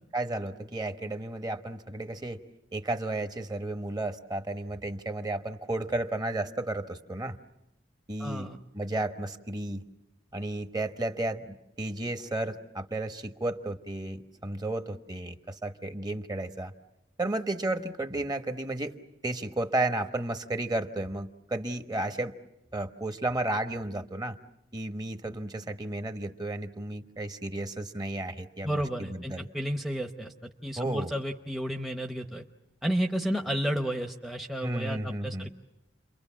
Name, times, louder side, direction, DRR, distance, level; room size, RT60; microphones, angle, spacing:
voice 1, 0.1-2.4 2.7-7.4 8.1-9.8 10.3-16.7 17.2-18.9 19.2-22.3 22.7-24.4 24.7-29.5 30.8-31.1 34.6-35.5, right 2 dB, 20° right, 7 dB, 1.2 m, -33 dB
voice 2, 8.2-8.6 28.6-30.3 30.6-32.4 32.8-35.5, equal, ahead, 5 dB, 0.9 m, -32 dB
30.0 x 23.5 x 7.4 m, 0.91 s
head